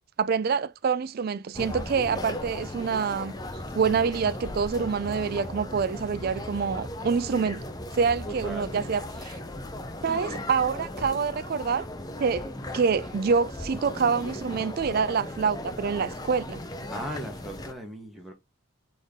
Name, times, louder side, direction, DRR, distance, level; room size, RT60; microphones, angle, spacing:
voice 1, 0.2-3.3 3.7-7.6 7.9-9.4 10.0-11.9 12.2-16.6, right 5 dB, 45° right, 0.3 m, -26 dB
sound 1, 1.5-17.7, left 1 dB, 20° left, 0.5 m, -37 dB
voice 2, 8.2-8.8 10.1-10.5 16.9-18.3, right 1 dB, ahead, 1.2 m, -38 dB
4.3 x 3.4 x 3.5 m
head